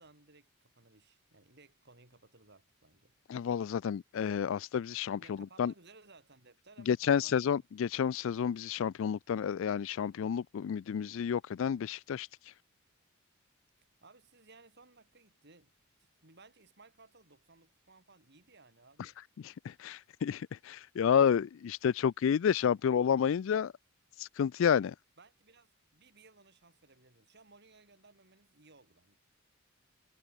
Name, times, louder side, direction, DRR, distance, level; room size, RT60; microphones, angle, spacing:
voice 1, 0.0-3.2 5.2-7.6 14.0-15.7 16.0-19.2 25.2-29.2, right 3 dB, 55° right, 5.0 m, -60 dB
voice 2, 3.3-5.7 6.9-12.3 19.4-23.7 24.2-24.9, left 7 dB, 65° left, 0.3 m, -30 dB
head